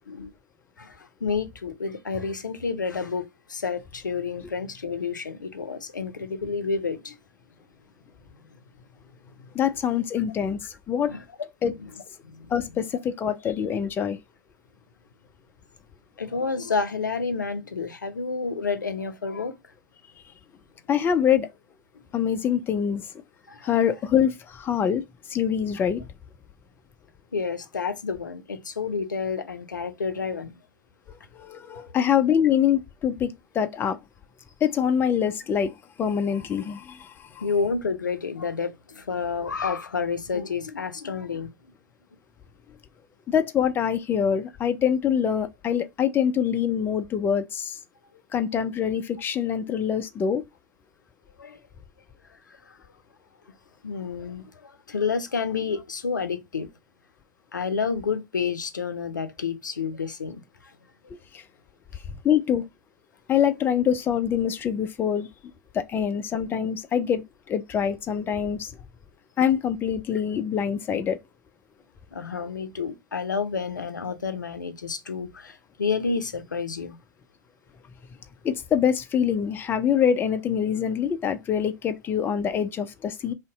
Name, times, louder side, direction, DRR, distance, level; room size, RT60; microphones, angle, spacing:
voice 1, 0.8-7.2 11.1-11.2 11.8-11.9 12.2-12.5 16.2-19.5 23.5-23.7 27.3-30.5 31.8-31.9 37.4-41.5 51.4-51.6 52.7-52.8 53.8-56.7 57.5-60.4 72.1-77.0, left 5 dB, 85° left, 0.5 m, -30 dB
voice 2, 9.5-11.1 11.6-11.7 12.5-14.2 20.9-21.5 22.1-23.1 23.6-25.0 25.3-26.1 31.3-34.0 34.6-37.4 43.3-47.8 48.3-50.4 61.3-61.4 62.2-62.6 63.3-65.3 65.7-68.7 69.4-71.2 78.4-83.3, left 8 dB, 20° left, 0.4 m, -25 dB
2.6 x 2.1 x 3.7 m
figure-of-eight pair, 90°, 10 cm